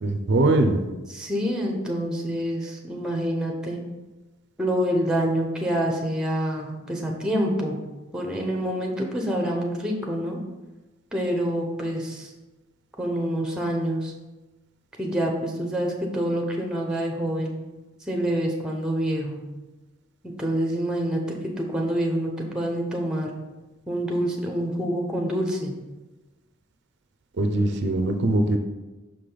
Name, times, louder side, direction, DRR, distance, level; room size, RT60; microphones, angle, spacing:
voice 1, 0.0-0.8 27.4-28.6, right 2 dB, 55° right, 6 dB, 0.5 m, -21 dB
voice 2, 1.1-3.8 4.6-7.8 8.1-10.4 11.1-12.3 13.0-14.1 15.0-17.6 18.1-19.4 20.4-23.3 23.9-25.7, equal, 5° right, 1 dB, 0.8 m, -27 dB
6.0 x 4.9 x 3.9 m, 1.1 s
head